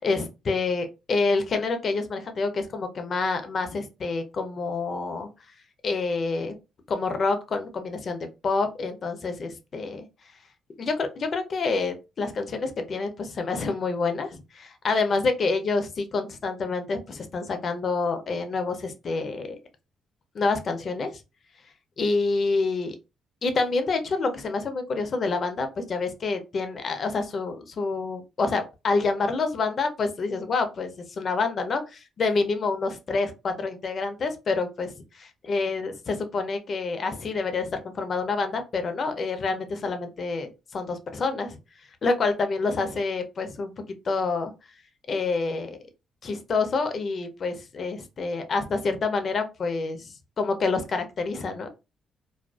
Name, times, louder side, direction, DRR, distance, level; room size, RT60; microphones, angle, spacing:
voice 1, 0.0-5.3 5.8-6.5 6.9-10.0 10.8-19.6 20.3-21.2 22.0-23.0 23.4-34.9 35.5-41.6 42.0-43.7 44.1-44.5 45.1-45.8 46.2-51.7, left 4 dB, 50° left, 7 dB, 0.5 m, -27 dB
2.4 x 2.3 x 2.2 m, 0.27 s
cardioid pair, 90°, 0 cm